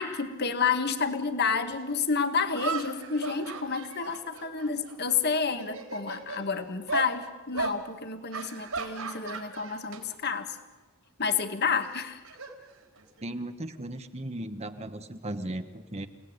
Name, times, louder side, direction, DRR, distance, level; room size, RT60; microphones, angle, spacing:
voice 1, 0.0-10.6 11.2-12.2, left 5 dB, 50° left, 8 dB, 1.8 m, -30 dB
sound 1, 1.7-1.8 2.5-5.2 5.5-6.4 6.9-7.1 7.5-7.8 8.3-10.0 10.3-10.6 11.8-13.2, right 4 dB, 85° right, 4.4 m, -36 dB
voice 2, 13.2-16.1, right 1 dB, 30° right, 8 dB, 1.1 m, -36 dB
29.5 x 18.5 x 9.6 m, 1.3 s
head